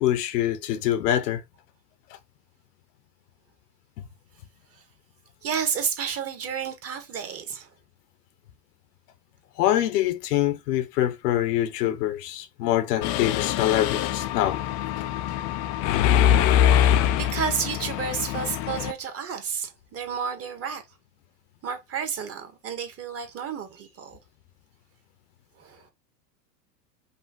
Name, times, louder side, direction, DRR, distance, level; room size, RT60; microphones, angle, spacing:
voice 1, 0.0-1.4 9.6-14.6, left 12 dB, 70° left, 1.0 m, -24 dB
voice 2, 5.4-7.7 16.7-20.8 21.6-24.2 25.6-25.9, right 7 dB, 30° right, 1.3 m, -31 dB
Mechanisms, 13.0-18.9, left 10 dB, 40° left, 0.4 m, -23 dB
5.5 x 2.3 x 3.7 m
hypercardioid pair, 110°, 49 cm